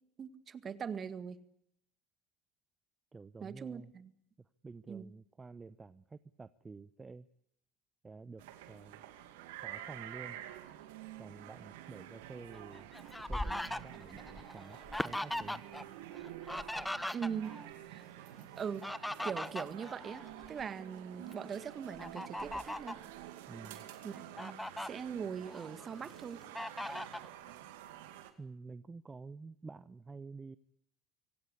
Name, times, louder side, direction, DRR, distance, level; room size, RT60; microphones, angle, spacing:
voice 1, 0.2-1.4 3.4-4.1 4.9-5.1 17.1-18.1 18.6-23.0 24.0-26.4, right 7 dB, 40° right, 13 dB, 1.9 m, -41 dB
voice 2, 3.1-3.9 4.4-7.3 8.0-9.0 9.6-10.4 11.2-12.9 13.3-15.6 23.5-23.9 28.4-30.6, right 4 dB, 25° right, 15 dB, 0.9 m, -50 dB
sound 1, 8.4-28.3, right 12 dB, 80° right, 2.4 m, -49 dB
Fowl, 12.5-15.8 16.1-17.7 18.6-20.7 21.1-21.3 22.0-23.0 23.7-23.8 24.1-24.9 25.4-26.1 26.6-27.3, left 1 dB, 5° left, 1.2 m, -40 dB
25.0 x 17.5 x 9.8 m, 0.74 s
hypercardioid pair, 70°, 0 cm